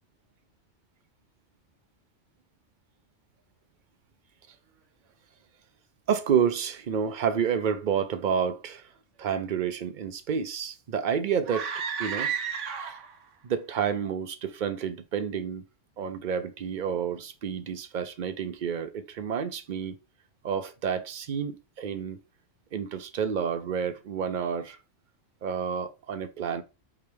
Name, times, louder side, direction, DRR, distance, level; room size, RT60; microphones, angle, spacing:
voice 1, 6.1-8.9 9.2-11.7 12.0-12.3 12.8-13.0 13.4-15.6 16.0-19.9 20.4-22.2 22.7-24.8 25.4-26.6, right 7 dB, 55° right, 0.6 m, -29 dB
sound 1, 11.4-13.2, right 7 dB, 80° right, 1.1 m, -32 dB
4.9 x 3.2 x 3.3 m
omnidirectional pair, 1.2 m